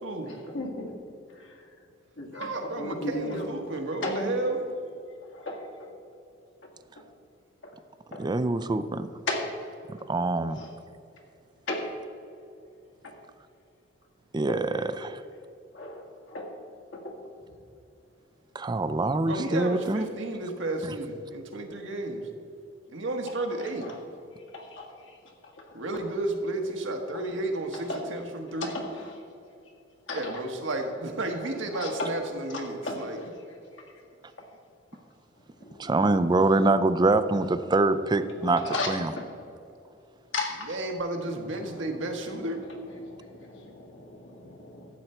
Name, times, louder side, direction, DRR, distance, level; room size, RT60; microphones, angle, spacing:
voice 1, 0.3-0.9 1.4-1.5 2.2-2.5 2.8-3.5 4.0-4.3 5.3-5.6 8.1-8.3 9.3-9.5 10.6-10.7 11.7-11.9 14.5-14.6 15.7-16.0 16.3-16.5 16.9-17.1 23.6-24.0 24.5-24.9 27.1-27.3 27.7-28.1 28.6-29.2 30.1-30.4 31.7-32.2 32.5-33.3 35.6-35.9 38.4-39.3 40.3-40.5 41.5-42.7 43.0-44.9, left 2 dB, 75° left, -1 dB, 1.8 m, -35 dB
voice 2, 2.3-4.6 19.3-22.2 22.9-23.9 25.7-28.8 30.1-33.2 40.7-42.6, right 2 dB, 75° right, 3 dB, 1.3 m, -32 dB
voice 3, 8.2-9.1 10.1-10.6 14.3-15.2 18.5-20.1 20.8-20.9 35.8-39.1, right 2 dB, 20° right, 12 dB, 0.4 m, -25 dB
12.0 x 8.0 x 4.4 m, 2.6 s
head